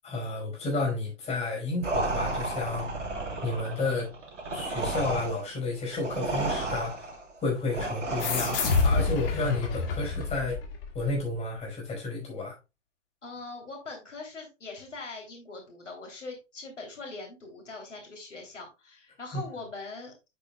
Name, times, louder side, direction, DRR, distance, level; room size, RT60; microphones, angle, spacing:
voice 1, 0.0-2.9 3.4-4.1 4.5-7.1 7.4-10.6 10.9-12.6 19.3-19.4, left 2 dB, 15° left, 4.7 m, -31 dB
sound 1, 1.8-9.2, right 2 dB, 80° right, 3.0 m, -33 dB
sound 2, 8.2-11.2, left 4 dB, 50° left, 1.9 m, -28 dB
voice 2, 13.2-20.1, left 3 dB, 80° left, 3.1 m, -42 dB
9.0 x 8.3 x 2.2 m
figure-of-eight pair, 110°, 36 cm